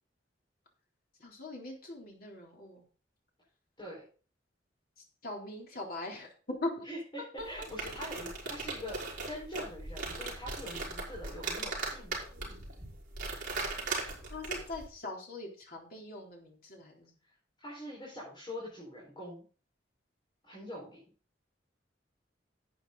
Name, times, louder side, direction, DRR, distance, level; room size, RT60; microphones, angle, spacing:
voice 1, 1.2-2.8 5.0-6.9 7.4-7.5 14.3-17.1, left 2 dB, 55° left, 0 dB, 3.5 m, -41 dB
voice 2, 6.8-12.2 17.6-19.4 20.4-21.0, left 1 dB, 25° left, -6 dB, 4.9 m, -43 dB
sound 1, 7.4-14.9, right 3 dB, 45° right, 4.7 m, -39 dB
11.0 x 8.8 x 4.0 m, 0.39 s
head